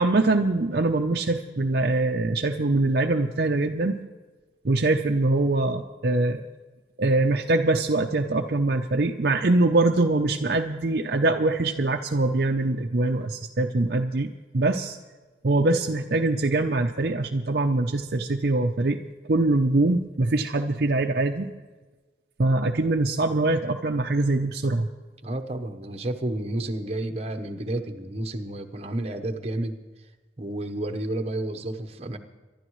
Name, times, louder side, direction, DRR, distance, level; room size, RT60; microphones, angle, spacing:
voice 1, 0.0-4.0 4.6-6.4 7.0-15.0 15.4-19.0 19.3-21.5 22.4-24.9, right 2 dB, 55° right, 3 dB, 0.6 m, -23 dB
voice 2, 25.2-29.8 30.4-32.2, right 1 dB, 35° right, 6 dB, 1.0 m, -31 dB
24.5 x 12.0 x 3.1 m, 1.3 s
head